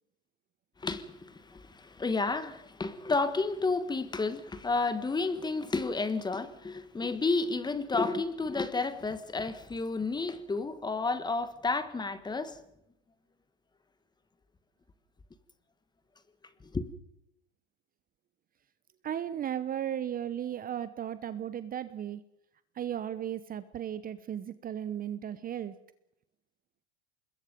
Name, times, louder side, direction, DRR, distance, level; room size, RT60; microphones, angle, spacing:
voice 1, 0.8-12.6 16.7-16.9, left 3 dB, 10° left, 1.6 m, -31 dB
voice 2, 19.0-22.2 22.7-25.7, right 10 dB, 25° right, 0.9 m, -35 dB
25.0 x 21.5 x 5.3 m
hypercardioid pair, 105°, 33 cm